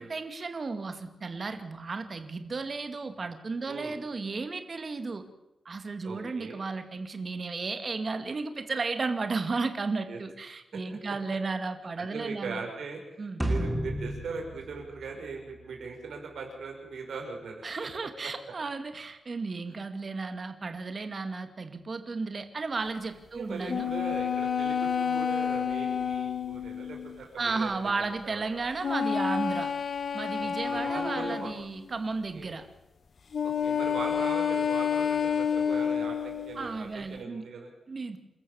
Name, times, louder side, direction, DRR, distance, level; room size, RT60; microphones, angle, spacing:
voice 1, 0.0-5.2 5.7-12.6 13.2-13.4 17.6-23.9 27.4-29.7 30.1-32.7 36.5-37.5 37.9-38.2, right 4 dB, 40° right, 8 dB, 2.3 m, -34 dB
voice 2, 6.0-6.6 10.1-10.2 12.0-17.6 18.2-18.3 23.3-27.7 28.2-28.4 30.4-31.5 32.3-32.5 33.4-37.7, right 4 dB, 75° right, 1 dB, 5.9 m, -40 dB
sound 1, 13.4-15.9, right 1 dB, 5° right, 3.2 m, -32 dB
sound 2, 23.7-27.2 28.8-31.7 33.3-36.6, left 7 dB, 55° left, 1.3 m, -29 dB
28.0 x 14.0 x 7.2 m, 0.97 s
wide cardioid pair, 140°, 0 cm